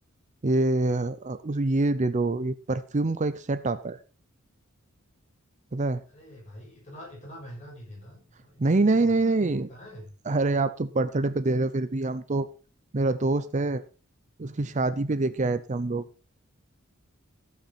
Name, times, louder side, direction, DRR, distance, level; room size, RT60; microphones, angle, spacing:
voice 1, 0.4-4.0 5.7-6.0 8.6-9.7 10.3-12.5 12.9-13.8 14.4-16.0, right 2 dB, 35° right, 13 dB, 0.6 m, -25 dB
voice 2, 6.1-9.4 9.7-10.1, equal, 35° left, -1 dB, 6.3 m, -45 dB
14.5 x 8.5 x 4.2 m, 0.36 s
head